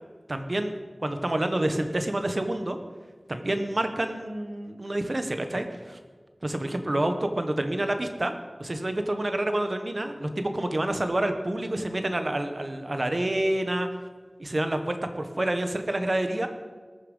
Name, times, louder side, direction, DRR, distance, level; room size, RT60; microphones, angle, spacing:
voice 1, 0.3-0.7 1.0-2.8 3.3-6.0 6.4-13.9 14.4-16.5, right 1 dB, 50° right, 7 dB, 1.3 m, -28 dB
19.5 x 7.1 x 5.6 m, 1.5 s
wide cardioid pair, 45°, 0 cm